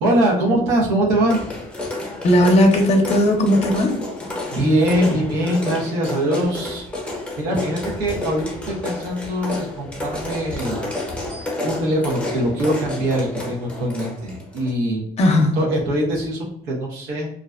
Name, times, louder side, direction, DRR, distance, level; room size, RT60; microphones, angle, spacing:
voice 1, 0.0-1.5 4.5-10.8 11.2-11.3 11.6-15.0 15.5-17.3, right 1 dB, 90° right, -3 dB, 0.7 m, -22 dB
sound 1, 1.3-14.7, left 2 dB, 5° left, 0.7 m, -30 dB
voice 2, 2.2-4.0 15.2-15.6, left 1 dB, 40° left, 3 dB, 0.6 m, -16 dB
2.4 x 2.1 x 2.3 m, 0.71 s
cardioid pair, 110°, 17 cm